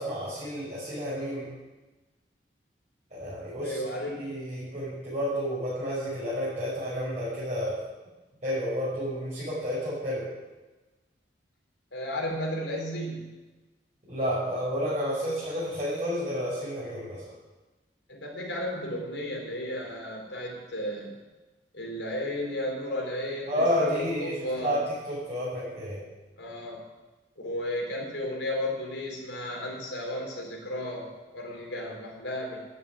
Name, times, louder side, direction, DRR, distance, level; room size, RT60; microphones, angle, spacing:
voice 1, 0.0-1.5 3.1-3.8 4.2-7.8 8.4-10.3 14.1-17.2 23.5-24.8 25.1-26.0, equal, 40° right, -11 dB, 6.0 m, -30 dB
voice 2, 3.6-4.2 11.9-13.3 18.1-21.1 21.7-24.8 26.4-26.8 27.4-32.6, left 1 dB, 85° left, -1 dB, 4.4 m, -34 dB
12.5 x 7.6 x 9.6 m, 1.2 s
head